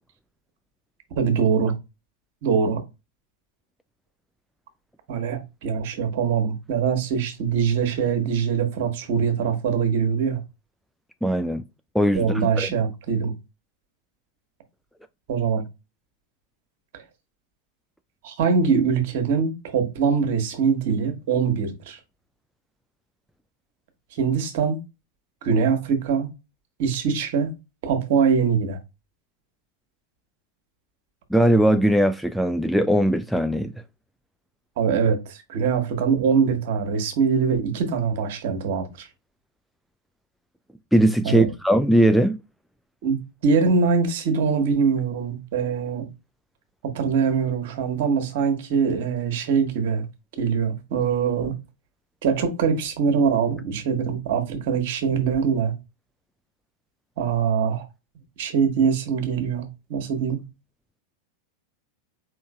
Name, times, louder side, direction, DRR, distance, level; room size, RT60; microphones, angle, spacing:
voice 1, 1.1-1.7 2.4-2.8 5.1-10.4 12.1-13.3 15.3-15.6 16.9-17.0 18.2-22.0 24.1-24.8 25.4-26.3 26.8-27.5 27.8-28.8 34.8-39.1 41.2-41.5 43.0-46.1 46.8-50.0 50.4-51.6 52.2-55.7 57.2-57.9 58.4-60.4, right 6 dB, 50° right, 1.4 m, -23 dB
voice 2, 11.2-11.6 11.9-12.7 31.3-33.7 40.9-42.4, right 1 dB, ahead, 0.3 m, -19 dB
4.9 x 3.7 x 2.4 m
figure-of-eight pair, 90°, 0 cm